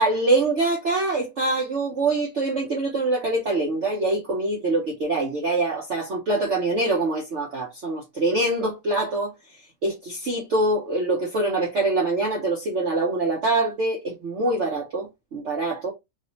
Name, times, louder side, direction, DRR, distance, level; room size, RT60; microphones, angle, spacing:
voice 1, 0.0-9.3 9.8-15.9, right 2 dB, 55° right, 0.9 m, -24 dB
3.1 x 2.7 x 2.9 m
omnidirectional pair, 1.9 m